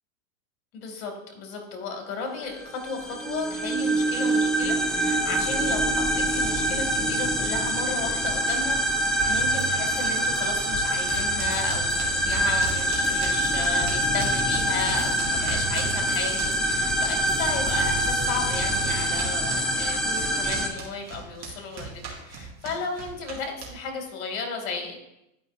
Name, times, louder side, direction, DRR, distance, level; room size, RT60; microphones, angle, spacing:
voice 1, 0.7-25.0, left 4 dB, 55° left, 3 dB, 2.3 m, -34 dB
sound 1, 2.6-20.7, right 1 dB, ahead, 0.5 m, -25 dB
sound 2, 9.2-14.3 14.6-19.8 20.2-21.2, right 3 dB, 20° left, 1.6 m, -38 dB
sound 3, 11.0-17.4 17.7-24.0, right 5 dB, 30° right, 2.0 m, -38 dB
11.0 x 5.3 x 2.5 m, 0.85 s
hypercardioid pair, 115°, 49 cm